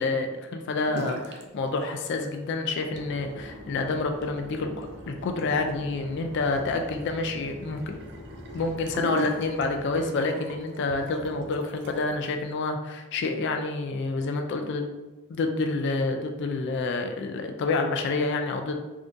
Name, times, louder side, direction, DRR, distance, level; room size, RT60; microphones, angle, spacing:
voice 1, 0.0-7.9 8.5-14.9 15.3-18.7, left 3 dB, 55° left, 5 dB, 0.3 m, -28 dB
sound 1, 0.9-1.5 1.7-2.4 2.8-12.2, right 1 dB, 50° right, 0.4 m, -41 dB
sound 2, 2.9-10.2, left 1 dB, 80° right, 1.1 m, -44 dB
3.6 x 2.6 x 2.5 m, 1.1 s
head